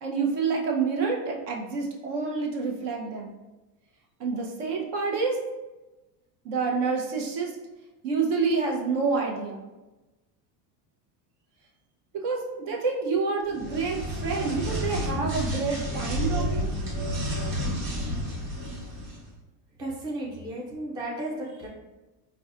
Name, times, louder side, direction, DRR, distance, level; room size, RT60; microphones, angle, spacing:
voice 1, 0.0-3.3 4.2-5.4 6.4-7.5 8.0-9.6 12.1-16.7, right 4 dB, 55° right, 0 dB, 0.9 m, -28 dB
sound 1, 13.5-19.2, equal, 75° right, 1.3 m, -30 dB
voice 2, 19.8-21.7, right 1 dB, 10° right, -3 dB, 0.3 m, -34 dB
4.0 x 2.3 x 2.5 m, 1.1 s
supercardioid pair, 110°, 49 cm